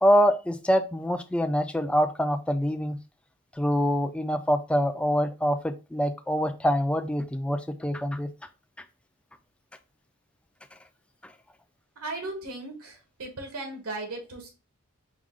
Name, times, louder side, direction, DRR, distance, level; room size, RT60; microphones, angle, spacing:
voice 1, 0.0-3.0 3.6-8.3 11.2-11.3, equal, 5° left, 8 dB, 0.3 m, -25 dB
voice 2, 11.9-14.5, right 2 dB, 80° right, 3 dB, 1.3 m, -37 dB
4.8 x 2.3 x 3.7 m, 0.30 s
head